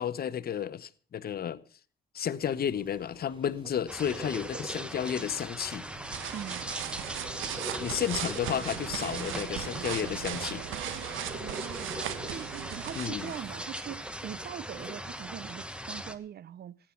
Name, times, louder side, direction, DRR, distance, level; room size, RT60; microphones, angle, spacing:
voice 1, 0.0-1.6 2.1-5.9 7.8-10.6 12.9-13.3, left 9 dB, 50° left, 0.9 m, -32 dB
sound 1, 2.4-15.0, right 1 dB, 25° right, 2.3 m, -47 dB
sound 2, 3.9-16.1, equal, 5° right, 1.2 m, -40 dB
sound 3, 5.8-13.5, right 11 dB, 85° right, 1.1 m, -38 dB
voice 2, 6.3-6.8 11.4-16.8, right 10 dB, 55° right, 0.5 m, -42 dB
15.5 x 10.0 x 5.8 m
cardioid pair, 90°, 20 cm